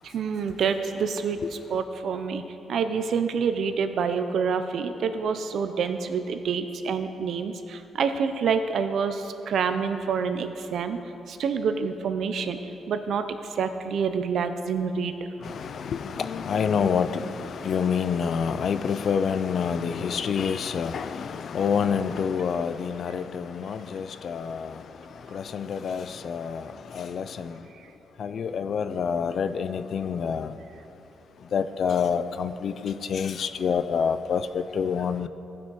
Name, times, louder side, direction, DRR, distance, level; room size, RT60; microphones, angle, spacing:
voice 1, 0.0-1.4 1.7-2.4 2.7-11.0 11.3-12.6 12.9-13.2 13.5-15.1, right 6 dB, 65° right, 0.6 m, -27 dB
voice 2, 15.5-24.7 25.3-26.6 26.9-27.5 28.2-30.5 31.5-35.3, left 6 dB, 55° left, 0.4 m, -27 dB
15.0 x 6.2 x 4.8 m
cardioid pair, 100°, 0 cm